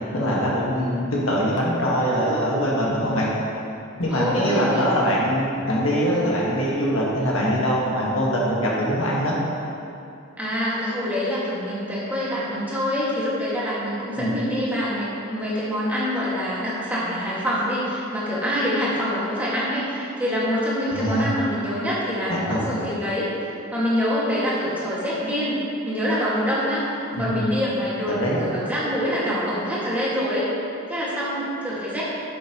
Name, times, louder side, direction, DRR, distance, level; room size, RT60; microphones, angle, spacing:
voice 1, 0.1-3.3 4.0-9.3 14.1-14.3 20.9-21.3 22.3-22.7 27.2-27.4 28.1-28.4, equal, 70° left, -5 dB, 1.7 m, -23 dB
voice 2, 4.1-4.8 10.4-26.9 27.2-30.5 30.9-32.0, equal, 10° right, -8 dB, 1.9 m, -25 dB
11.0 x 7.2 x 3.0 m, 2.6 s
head